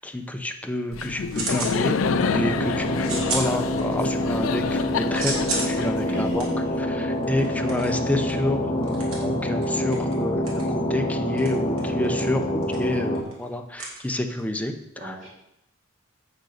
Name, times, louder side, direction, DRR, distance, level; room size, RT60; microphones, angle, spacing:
voice 1, 0.0-2.0 2.3-6.5 7.0-10.4 10.7-14.7 15.0-15.1, left 1 dB, 5° left, 5 dB, 0.8 m, -28 dB
sound 1, 0.6-1.8 2.1-2.6 3.0-4.2 4.5-14.6, right 3 dB, 85° right, 3.0 m, -34 dB
Laughter, 0.9-6.8, left 6 dB, 70° left, 0.4 m, -28 dB
sound 2, 2.0-13.2, equal, 30° left, 1.3 m, -26 dB
voice 2, 5.9-6.7 7.2-7.5 14.9-15.3, right 1 dB, 35° right, -6 dB, 2.5 m, -35 dB
8.0 x 6.7 x 6.6 m, 0.82 s
head